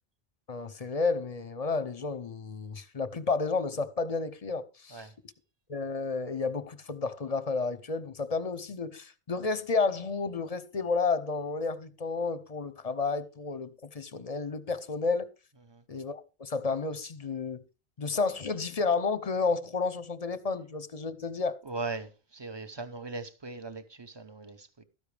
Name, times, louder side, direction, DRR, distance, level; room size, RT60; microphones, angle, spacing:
voice 1, 0.5-5.1 5.7-15.3 15.9-17.6 18.0-21.6, left 4 dB, 40° left, 0.7 m, -31 dB
voice 2, 21.6-24.8, right 3 dB, 25° right, 0.9 m, -39 dB
13.0 x 10.0 x 3.3 m
omnidirectional pair, 1.1 m